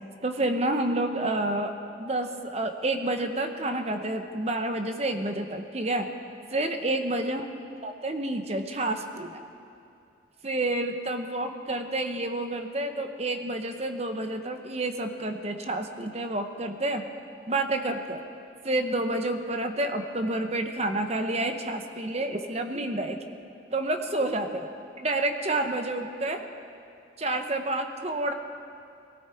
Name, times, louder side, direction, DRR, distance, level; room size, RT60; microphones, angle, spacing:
voice 1, 0.2-1.7 2.0-6.1 6.5-7.4 7.8-9.4 10.4-17.0 17.5-18.2 18.6-23.2 23.7-24.6 25.0-26.4 27.2-28.3, right 2 dB, 35° right, 6 dB, 0.9 m, -29 dB
18.0 x 16.5 x 4.5 m, 2.5 s
head